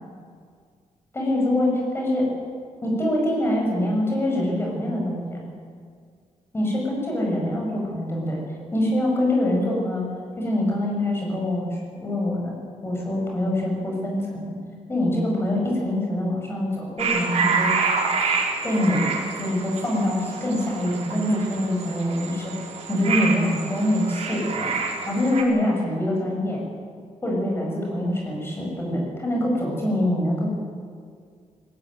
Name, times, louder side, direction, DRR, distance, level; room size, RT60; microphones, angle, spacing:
voice 1, 1.1-2.3 2.8-5.4 6.5-8.4 8.7-10.0 10.4-11.7 12.0-12.5 12.8-14.5 14.9-17.7 18.6-24.7 25.1-26.6 27.2-30.5, left 1 dB, 20° left, -1 dB, 7.9 m, -24 dB
sound 1, 17.0-25.4, right 5 dB, 60° right, 4.5 m, -27 dB
20.5 x 20.0 x 9.4 m, 2.1 s
wide cardioid pair, 165°, 12 cm